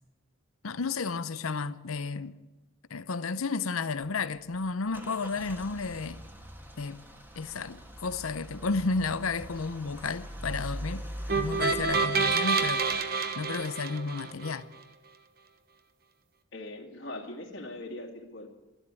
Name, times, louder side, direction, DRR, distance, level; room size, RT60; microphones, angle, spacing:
voice 1, 0.6-2.4 2.9-6.2 6.8-7.0 7.4-11.0 11.3-13.0 13.3-14.7, left 4 dB, 85° left, 0.7 m, -32 dB
Car / Engine starting / Idling, 4.5-11.8, equal, 10° right, 1.5 m, -42 dB
sound 1, 11.3-14.5, right 4 dB, 45° right, 1.2 m, -28 dB
voice 2, 16.5-18.5, left 1 dB, 60° left, 2.1 m, -41 dB
14.0 x 12.0 x 8.4 m
head